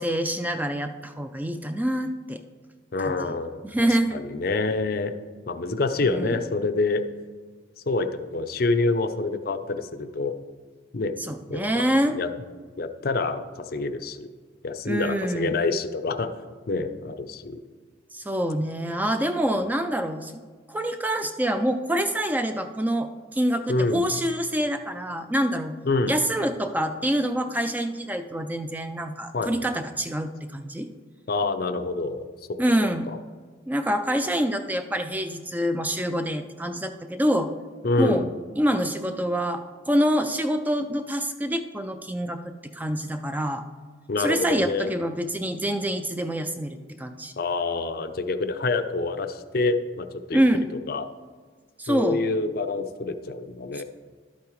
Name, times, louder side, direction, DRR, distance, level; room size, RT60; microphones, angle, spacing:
voice 1, 0.0-2.4 3.0-3.4 3.6-4.2 6.0-6.4 11.2-12.2 14.8-15.5 18.1-20.3 20.7-25.7 26.1-30.9 32.6-33.1 33.7-37.5 38.0-38.3 38.6-43.7 44.2-47.3 50.3-50.7 51.8-52.2 53.7-53.8, equal, 10° right, 8 dB, 0.3 m, -26 dB
voice 2, 2.9-5.1 5.5-7.0 7.9-10.3 10.9-11.1 11.5-11.8 12.1-12.3 12.8-14.3 14.6-16.3 16.7-17.6 19.5-19.6 23.7-24.0 25.9-26.1 29.3-29.7 31.3-32.2 33.1-33.2 37.8-38.3 44.1-44.9 47.4-50.4 50.9-51.1 51.9-53.8, left 3 dB, 50° left, 9 dB, 0.5 m, -27 dB
11.5 x 8.4 x 3.1 m, 1.5 s
head